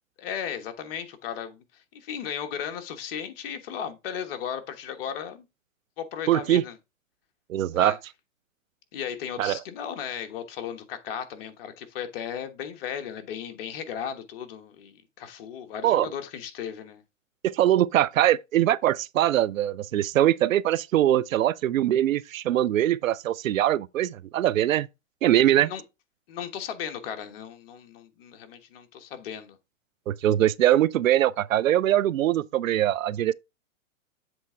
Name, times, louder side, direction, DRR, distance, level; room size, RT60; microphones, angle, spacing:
voice 1, 0.2-5.4 6.0-6.8 7.7-8.0 8.9-17.0 25.5-25.8 26.3-29.6, left 8 dB, 45° left, 1.3 m, -36 dB
voice 2, 6.3-6.6 7.5-8.0 9.4-9.6 15.8-16.1 17.4-24.9 25.2-25.7 30.1-33.3, right 12 dB, 85° right, 0.6 m, -22 dB
7.8 x 3.5 x 4.3 m
hypercardioid pair, 140°, 39 cm